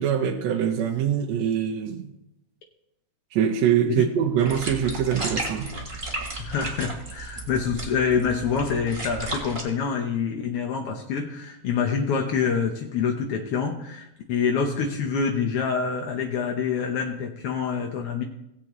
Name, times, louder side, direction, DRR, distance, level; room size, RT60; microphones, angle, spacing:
voice 1, 0.0-2.1 3.3-5.7, right 8 dB, 70° right, 1.7 m, -24 dB
sound 1, 4.4-9.6, right 2 dB, 30° right, 0.8 m, -34 dB
voice 2, 6.4-18.2, left 6 dB, 75° left, 1.3 m, -26 dB
18.0 x 8.4 x 3.1 m
omnidirectional pair, 3.8 m